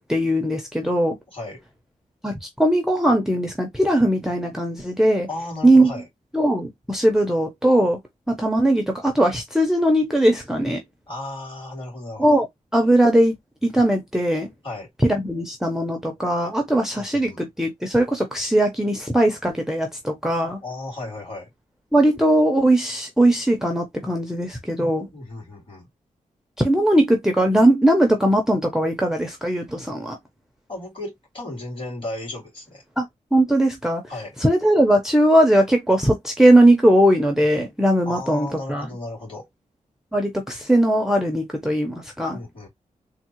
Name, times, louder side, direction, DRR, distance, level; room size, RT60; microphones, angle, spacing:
voice 1, 0.0-1.2 2.2-5.3 5.6-5.9 6.3-8.0 8.3-10.8 12.2-12.5 12.7-13.3 13.6-14.5 15.0-20.6 21.9-25.1 26.6-30.2 33.0-33.1 33.3-34.0 34.4-38.9 40.1-42.4, right 1 dB, 5° right, 0.6 m, -19 dB
voice 2, 1.3-1.6 5.3-6.1 11.1-12.4 14.6-14.9 16.9-17.4 20.6-21.5 25.1-25.9 30.7-32.8 34.1-34.3 38.0-39.5 42.3-42.7, left 2 dB, 40° left, 2.4 m, -34 dB
3.6 x 2.0 x 2.9 m
wide cardioid pair, 110°, 14 cm